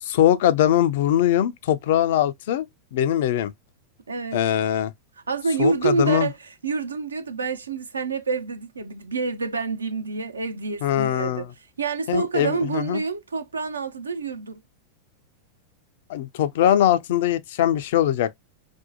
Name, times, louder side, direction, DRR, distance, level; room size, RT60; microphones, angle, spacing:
voice 1, 0.0-2.7 2.9-3.5 4.3-4.9 5.6-6.3 10.8-11.5 12.1-13.0 16.1-18.3, left 11 dB, 55° left, 0.3 m, -21 dB
voice 2, 4.1-4.5 5.3-11.5 11.8-14.6, right 4 dB, 75° right, 0.4 m, -27 dB
2.6 x 2.1 x 2.7 m
figure-of-eight pair, 90°, 0 cm